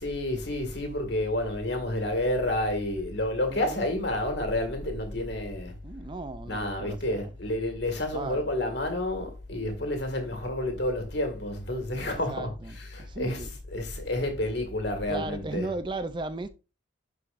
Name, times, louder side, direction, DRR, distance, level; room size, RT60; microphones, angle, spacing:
voice 1, 0.0-5.7 6.5-12.5 12.8-13.4 13.7-15.7, left 1 dB, 60° left, 2.0 m, -30 dB
voice 2, 3.5-3.9 5.8-7.3 8.1-8.5 12.3-13.5 15.1-16.5, right 2 dB, 25° right, 0.4 m, -36 dB
11.0 x 4.8 x 2.5 m
head